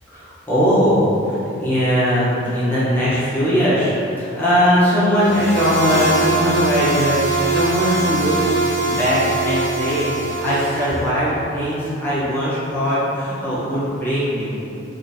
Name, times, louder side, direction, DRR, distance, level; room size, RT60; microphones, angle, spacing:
voice 1, 0.1-14.5, equal, 10° left, -12 dB, 0.8 m, -20 dB
sound 1, 5.2-11.0, right 2 dB, 60° right, 0.6 m, -22 dB
3.7 x 2.5 x 2.6 m, 2.9 s
head